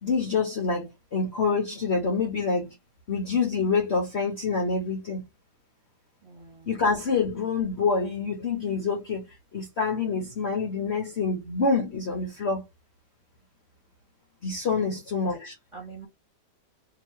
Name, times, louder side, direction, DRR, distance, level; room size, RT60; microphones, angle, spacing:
voice 1, 0.0-2.7 3.1-5.2 6.7-9.3 9.5-12.6 14.4-15.5, left 4 dB, 50° left, 1.0 m, -26 dB
voice 2, 6.2-6.8 14.7-14.9 15.7-16.1, right 4 dB, 20° right, 1.4 m, -45 dB
2.9 x 2.9 x 4.4 m
omnidirectional pair, 1.8 m